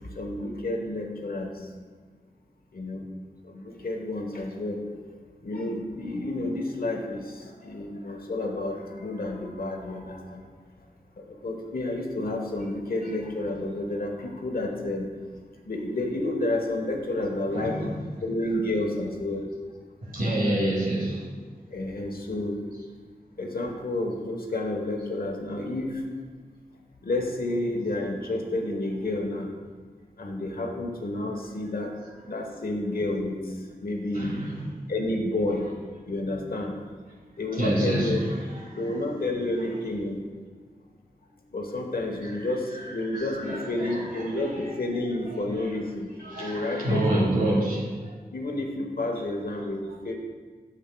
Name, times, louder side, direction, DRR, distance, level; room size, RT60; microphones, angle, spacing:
voice 1, 0.2-1.5 2.7-3.0 3.5-4.8 5.4-10.4 11.4-15.1 15.7-17.9 18.2-19.4 21.7-22.6 23.4-26.0 27.0-29.5 30.2-31.9 32.3-33.4 33.8-34.3 34.9-35.6 36.1-36.8 37.4-38.2 38.7-40.2 41.5-46.1 46.4-47.4 48.3-50.1, left 2 dB, 65° left, 1 dB, 1.1 m, -30 dB
voice 2, 17.5-18.0 20.0-21.2 34.1-34.6 37.5-38.4 38.8-39.2 39.5-39.8 42.2-44.8 45.1-45.7 46.2-47.8 49.5-49.6, right 1 dB, 65° right, -4 dB, 2.2 m, -29 dB
10.0 x 7.2 x 2.3 m, 1.5 s
wide cardioid pair, 55°, 16 cm